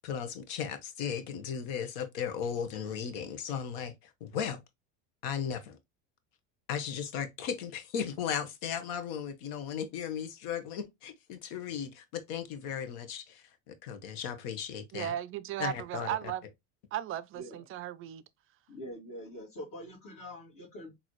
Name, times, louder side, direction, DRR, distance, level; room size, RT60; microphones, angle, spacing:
voice 1, 0.0-4.6 5.2-5.8 6.7-15.1 15.6-16.1, left 8 dB, 65° left, 1.1 m, -36 dB
voice 2, 14.9-16.4 16.9-18.2, right 12 dB, 35° right, 0.4 m, -36 dB
voice 3, 17.3-17.7 18.7-20.9, equal, 45° left, 2.3 m, -44 dB
4.0 x 2.8 x 3.0 m
supercardioid pair, 105°, 39 cm